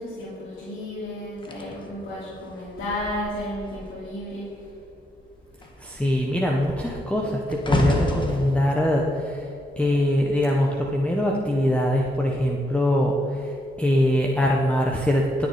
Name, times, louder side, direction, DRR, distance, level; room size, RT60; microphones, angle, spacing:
voice 1, 0.0-4.5, left 1 dB, 75° left, -8 dB, 3.3 m, -33 dB
sound 1, 1.4-4.1 4.4-4.8 5.1-10.5 11.2-11.5, left 2 dB, 25° left, 1.7 m, -30 dB
voice 2, 5.8-9.4 9.8-15.5, left 1 dB, 5° left, -1 dB, 1.2 m, -23 dB
19.0 x 6.9 x 5.2 m, 2.7 s
cardioid pair, 90°, 20 cm